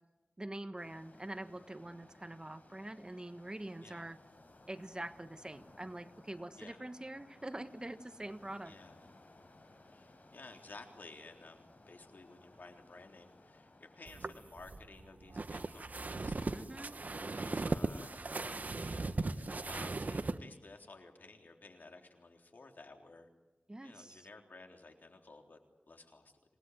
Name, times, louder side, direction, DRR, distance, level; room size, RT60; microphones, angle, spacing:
voice 1, 0.4-4.2 4.7-8.7 16.5-16.9 23.7-24.3, right 1 dB, 25° right, 10 dB, 1.4 m, -45 dB
sound 1, 0.8-14.2, left 2 dB, 60° left, 5.7 m, -61 dB
voice 2, 8.7-9.1 9.9-16.8 17.2-23.3 23.8-25.6 25.9-26.3, left 3 dB, 80° left, 3 dB, 3.6 m, -55 dB
sound 2, 14.1-20.4, right 3 dB, 60° right, 1.2 m, -38 dB
27.0 x 19.5 x 9.4 m, 1.1 s
wide cardioid pair, 55°, 3 cm